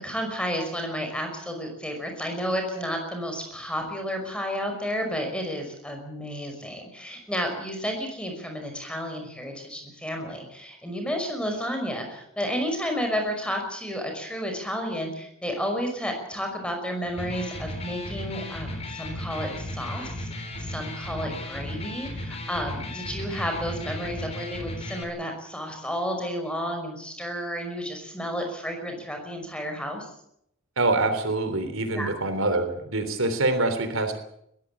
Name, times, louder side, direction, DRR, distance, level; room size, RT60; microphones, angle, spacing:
voice 1, 0.0-30.1 31.9-32.1, equal, 5° left, 4 dB, 5.5 m, -31 dB
Electric guitar, 17.0-25.0, left 1 dB, 30° left, 3.8 m, -35 dB
voice 2, 30.8-34.2, right 2 dB, 75° right, 9 dB, 3.4 m, -25 dB
21.5 x 15.0 x 8.6 m, 0.73 s
head